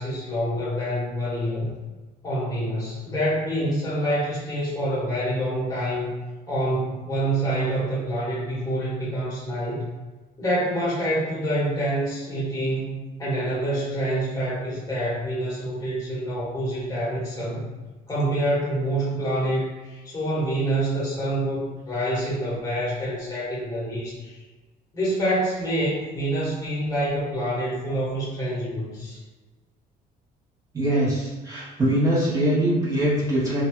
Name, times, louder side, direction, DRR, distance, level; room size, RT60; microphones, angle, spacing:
voice 1, 0.0-1.7 2.2-6.2 6.5-9.8 10.4-17.7 18.1-24.4 24.9-29.2, right 1 dB, 20° left, -8 dB, 1.4 m, -26 dB
voice 2, 30.7-33.6, right 1 dB, 20° right, -8 dB, 1.4 m, -22 dB
3.3 x 2.7 x 2.2 m, 1.2 s
cardioid pair, 110°, 17 cm